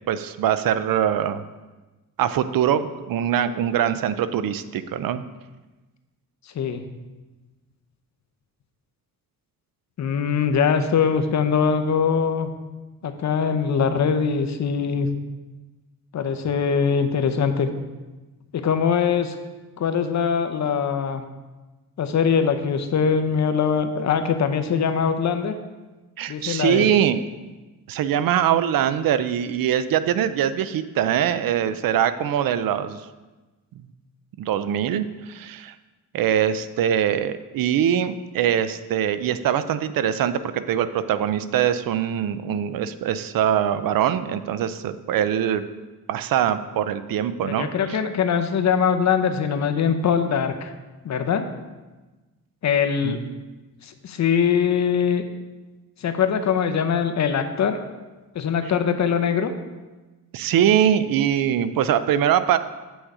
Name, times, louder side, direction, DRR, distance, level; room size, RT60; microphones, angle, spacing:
voice 1, 0.1-1.4 2.2-5.2 26.2-27.2 27.9-33.0 34.4-35.7 36.1-45.6 46.1-47.7 53.0-53.2 60.3-62.6, right 9 dB, 75° right, 13 dB, 0.5 m, -22 dB
voice 2, 10.0-12.5 13.0-15.1 16.1-17.7 18.5-19.3 19.8-21.2 22.0-25.5 26.3-27.0 47.4-50.7 51.0-51.5 52.6-53.2 53.8-55.2 56.0-57.8 58.3-59.5, left 6 dB, 55° left, 8 dB, 0.7 m, -22 dB
7.9 x 6.3 x 4.9 m, 1.2 s
wide cardioid pair, 140°, 34 cm